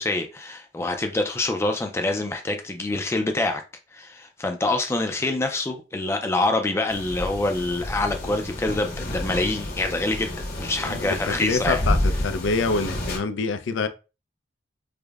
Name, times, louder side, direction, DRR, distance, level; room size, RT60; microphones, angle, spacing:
voice 1, 0.0-3.6 3.9-11.8, left 2 dB, 15° left, 0.3 m, -26 dB
sound 1, 6.9-13.2, left 1 dB, 55° left, 1.0 m, -29 dB
voice 2, 10.8-13.9, left 4 dB, 85° left, 0.4 m, -26 dB
4.9 x 2.1 x 2.3 m
head